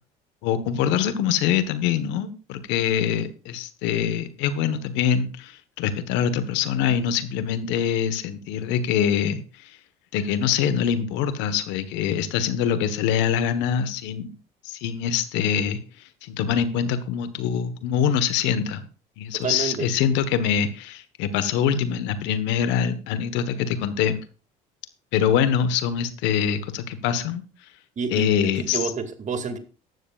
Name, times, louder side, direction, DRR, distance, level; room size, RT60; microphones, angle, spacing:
voice 1, 0.4-9.4 10.1-14.3 14.6-15.8 16.2-18.9 19.2-24.2 25.1-27.4 28.1-28.9, left 8 dB, 75° left, 1.4 m, -24 dB
voice 2, 19.4-19.9 28.0-29.6, right 5 dB, 40° right, 2.3 m, -29 dB
14.5 x 12.0 x 2.5 m
supercardioid pair, 75°, 19 cm